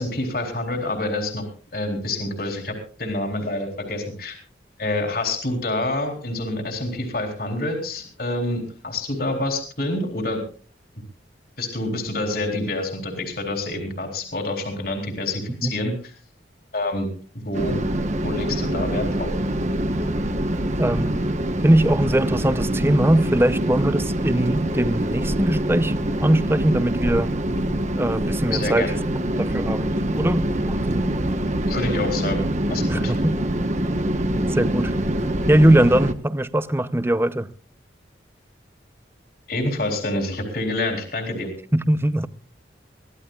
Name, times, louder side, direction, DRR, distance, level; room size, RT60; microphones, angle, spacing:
voice 1, 0.0-1.4 1.7-2.7 3.0-4.4 4.8-10.4 11.6-15.9 16.7-17.1 17.4-17.8 18.2-19.3 28.5-28.9 31.7-32.4 32.7-33.1 39.5-41.5, left 2 dB, 55° left, 3.9 m, -27 dB
sound 1, 17.5-36.1, right 1 dB, 40° right, 1.2 m, -24 dB
voice 2, 20.8-21.3 21.6-25.9 26.2-27.3 28.0-28.9 29.4-31.1 32.9-33.3 34.5-34.9 35.5-37.5 41.7-42.3, right 1 dB, 15° right, 0.6 m, -21 dB
24.0 x 16.0 x 2.4 m
head